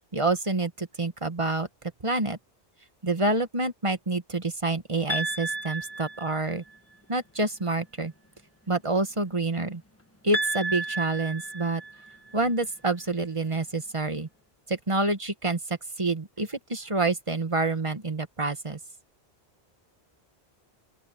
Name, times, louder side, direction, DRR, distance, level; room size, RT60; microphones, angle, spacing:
voice 1, 0.1-1.7 2.0-2.4 3.0-6.6 7.1-8.1 8.7-9.8 10.2-11.8 12.3-14.3 14.7-18.8, right 2 dB, 30° right, 1.3 m, -27 dB
sound 1, 5.1-6.7 10.3-12.4, right 2 dB, 15° left, 1.5 m, -32 dB
open air
omnidirectional pair, 1.1 m